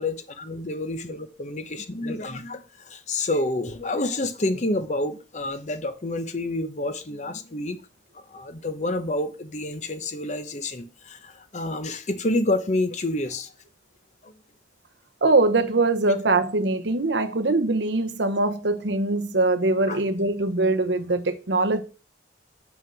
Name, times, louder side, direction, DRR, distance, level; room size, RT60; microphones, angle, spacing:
voice 1, 0.0-7.8 8.3-13.5 14.2-14.3 19.9-20.0, left 2 dB, 40° left, 0.9 m, -28 dB
voice 2, 15.2-21.8, right 2 dB, 75° right, 1.0 m, -22 dB
6.2 x 5.5 x 6.2 m
head